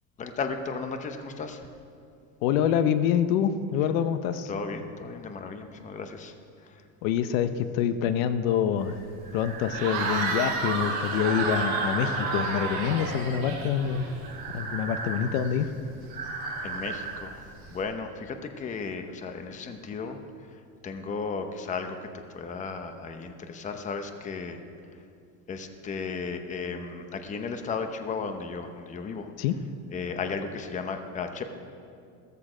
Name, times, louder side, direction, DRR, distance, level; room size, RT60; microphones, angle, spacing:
voice 1, 0.2-1.6 4.5-6.3 6.7-6.8 16.6-20.2 20.8-22.0 22.3-24.6 25.5-29.3 29.9-31.5, left 5 dB, 20° left, 7 dB, 0.8 m, -35 dB
voice 2, 2.4-4.5 7.0-8.9 9.3-14.1 14.5-15.7 29.4-29.6, left 9 dB, 70° left, 11 dB, 0.9 m, -26 dB
Breathing, 8.8-17.8, right 3 dB, 20° right, 3.1 m, -35 dB
Cheering / Crowd, 9.7-14.3, right 4 dB, 40° right, 4.9 m, -32 dB
16.0 x 14.0 x 5.0 m, 2.4 s
cardioid pair, 150°, 42 cm